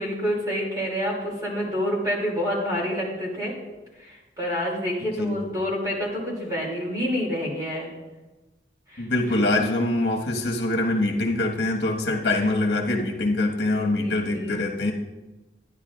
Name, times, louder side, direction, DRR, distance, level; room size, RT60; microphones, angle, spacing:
voice 1, 0.0-3.5 4.0-7.9 8.9-9.1 13.7-14.6, equal, 20° right, -4 dB, 2.8 m, -28 dB
voice 2, 9.0-14.9, left 2 dB, 65° left, 0 dB, 1.5 m, -24 dB
12.5 x 10.0 x 2.5 m, 1.1 s
head